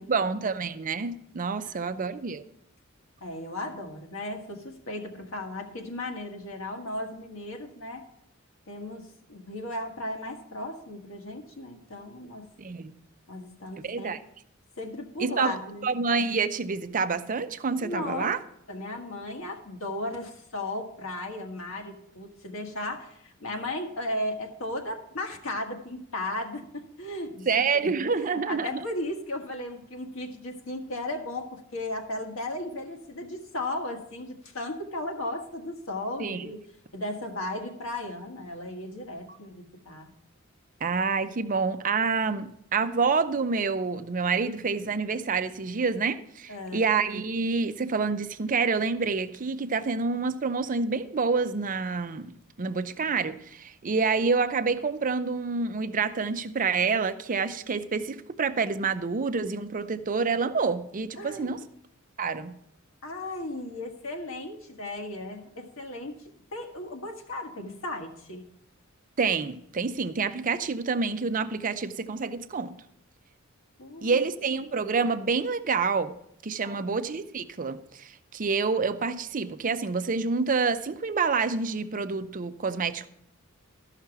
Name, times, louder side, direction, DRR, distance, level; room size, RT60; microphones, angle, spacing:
voice 1, 0.0-2.4 12.6-13.0 13.8-14.2 15.2-15.6 15.8-18.4 27.5-28.8 36.2-36.4 40.8-52.3 52.6-61.6 62.2-62.5 69.2-72.7 74.0-76.1 76.4-83.1, right 4 dB, 40° right, 10 dB, 0.6 m, -28 dB
voice 2, 1.7-2.0 3.2-8.0 8.7-12.4 13.3-14.2 14.8-15.9 17.8-18.3 18.7-36.7 36.9-40.1 46.5-46.9 61.2-61.7 63.0-66.1 66.5-68.5 73.8-74.2 76.6-76.9, left 1 dB, 70° left, 3 dB, 1.5 m, -36 dB
13.5 x 5.8 x 5.9 m, 0.74 s
head